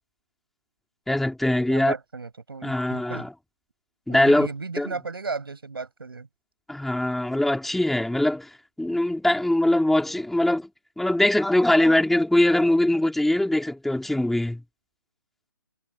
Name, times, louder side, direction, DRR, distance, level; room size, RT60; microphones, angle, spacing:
voice 1, 1.1-1.9 2.6-3.3 4.1-4.5 4.8-4.9 6.7-8.5 8.8-10.7 11.0-14.6, left 1 dB, ahead, 3.7 m, -22 dB
voice 2, 1.7-3.3 4.1-6.3, right 4 dB, 80° right, 7.2 m, -34 dB
figure-of-eight pair, 150°, 12 cm